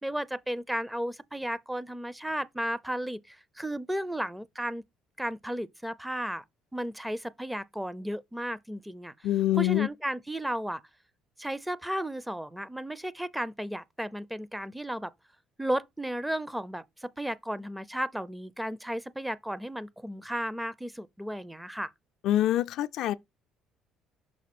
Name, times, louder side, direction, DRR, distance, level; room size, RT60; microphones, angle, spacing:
voice 1, 0.0-4.8 5.2-6.4 6.7-9.1 9.6-10.8 11.4-15.1 15.6-21.9, right 1 dB, 5° right, 0.5 m, -34 dB
voice 2, 9.2-9.9 22.2-23.1, left 13 dB, 70° left, 0.3 m, -25 dB
6.1 x 4.1 x 4.2 m
supercardioid pair, 75°, 0 cm